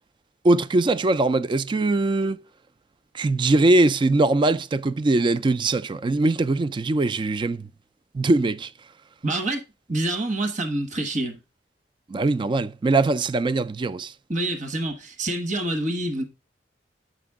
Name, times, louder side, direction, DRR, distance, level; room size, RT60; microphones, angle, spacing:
voice 1, 0.4-2.4 3.1-7.7 8.1-8.7 12.1-14.1, right 2 dB, 25° right, 0.3 m, -21 dB
voice 2, 9.2-11.4 14.3-16.2, right 1 dB, 45° right, 1.2 m, -27 dB
7.8 x 5.1 x 3.5 m
head